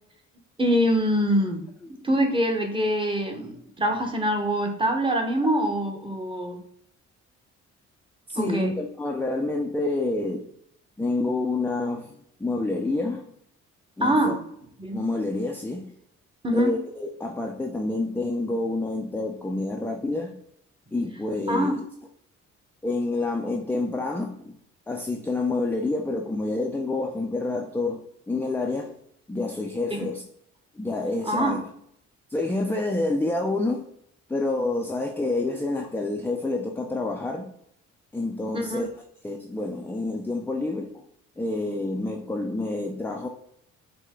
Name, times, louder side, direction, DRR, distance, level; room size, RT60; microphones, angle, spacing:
voice 1, 0.6-1.6 1.9-6.6 8.3-8.7 14.0-14.4 14.8-15.0 16.4-16.7 21.5-21.8 29.9-30.1 31.3-31.6 38.5-38.9, equal, 15° right, 3 dB, 1.0 m, -24 dB
voice 2, 8.3-10.5 11.0-12.1 12.4-13.3 14.0-14.3 14.9-15.9 16.5-20.3 20.9-21.8 22.8-24.6 24.9-28.9 29.3-30.2 30.8-31.6 32.3-33.9 34.3-37.5 38.1-38.9 39.2-41.0 41.4-43.3, left 2 dB, 5° left, 1 dB, 0.4 m, -28 dB
5.2 x 2.2 x 3.7 m, 0.71 s
cardioid pair, 90°, 30 cm